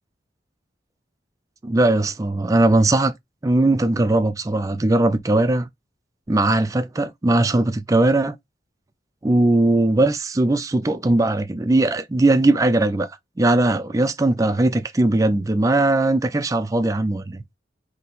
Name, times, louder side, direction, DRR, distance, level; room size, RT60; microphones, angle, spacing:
voice 1, 1.6-3.1 3.4-5.7 6.3-8.4 9.2-13.1 13.4-17.4, right 2 dB, 20° right, 0.3 m, -19 dB
4.1 x 2.8 x 3.8 m
head